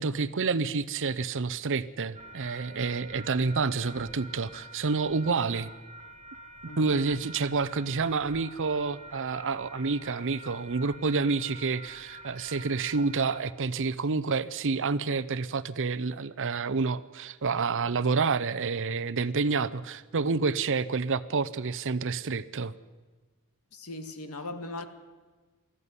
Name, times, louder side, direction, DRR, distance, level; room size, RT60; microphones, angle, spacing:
voice 1, 0.0-5.7 6.8-22.7, right 4 dB, 60° right, 15 dB, 0.7 m, -29 dB
sound 1, 2.1-13.5, right 1 dB, 30° right, 1.3 m, -47 dB
voice 2, 6.7-7.0 23.7-24.8, left 2 dB, 75° left, 9 dB, 1.9 m, -39 dB
19.0 x 14.0 x 9.7 m, 1.3 s
head